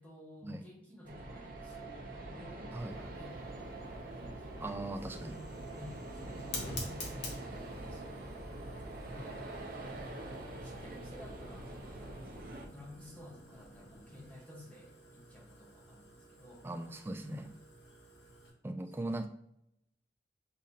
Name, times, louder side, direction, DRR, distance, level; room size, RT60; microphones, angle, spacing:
voice 1, 0.0-3.9 4.2-5.4 5.7-8.6 9.1-9.9 10.6-12.3 12.7-16.7 17.2-17.5 18.9-19.2, left 1 dB, 10° left, -3 dB, 1.0 m, -54 dB
sound 1, 1.0-12.7, right 2 dB, 50° right, 0.7 m, -44 dB
Fire, 2.8-18.5, left 2 dB, 70° left, 1.0 m, -50 dB
voice 2, 4.6-5.4 16.6-17.4 18.6-19.3, right 2 dB, 15° right, 5 dB, 0.3 m, -39 dB
Far Ocean and Gulls, 8.5-14.3, equal, 40° left, 1.0 m, -58 dB
6.3 x 2.6 x 2.7 m, 0.77 s
head